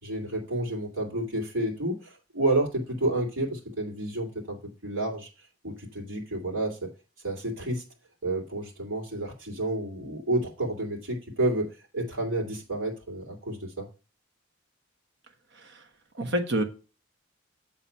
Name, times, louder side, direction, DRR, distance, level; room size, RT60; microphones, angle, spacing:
voice 1, 0.0-5.3 5.6-6.9 7.2-7.8 8.2-11.7 11.9-13.9, right 2 dB, 80° right, 0 dB, 2.8 m, -30 dB
voice 2, 16.1-16.6, right 1 dB, 60° right, 5 dB, 1.3 m, -28 dB
8.7 x 4.0 x 5.5 m, 0.32 s
head